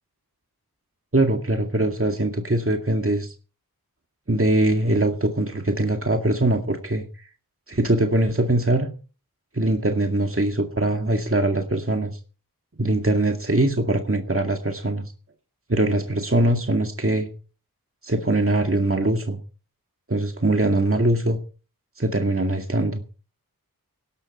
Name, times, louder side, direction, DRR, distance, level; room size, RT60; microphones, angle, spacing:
voice 1, 1.1-3.3 4.3-7.1 7.7-8.9 9.5-12.1 12.8-15.1 15.7-17.3 18.0-19.4 20.1-21.4 22.0-23.0, right 1 dB, 35° right, 4 dB, 2.1 m, -22 dB
18.5 x 12.5 x 4.4 m, 0.37 s
wide cardioid pair, 40°, 37 cm